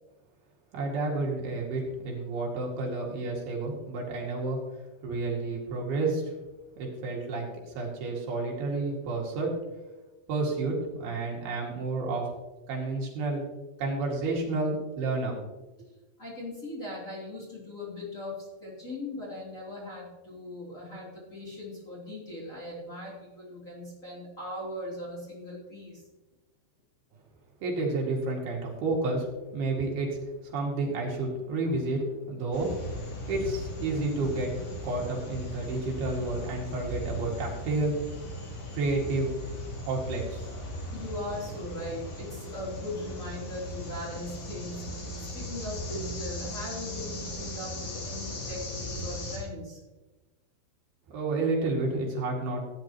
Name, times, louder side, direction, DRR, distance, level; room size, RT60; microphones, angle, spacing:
voice 1, 0.7-4.6 5.0-6.3 6.8-9.5 10.3-12.3 12.7-13.5 13.8-15.4 27.6-29.3 29.5-30.2 30.4-32.7 33.0-34.5 34.8-38.0 38.7-39.3 39.9-40.5 51.1-52.6, right 3 dB, 70° right, -2 dB, 4.0 m, -30 dB
voice 2, 16.2-26.0 40.9-44.8 45.2-49.8, left 1 dB, 20° left, -6 dB, 3.2 m, -39 dB
sound 1, 32.5-49.4, equal, 80° left, 5.1 m, -38 dB
16.5 x 9.4 x 3.0 m, 1.2 s
omnidirectional pair, 4.7 m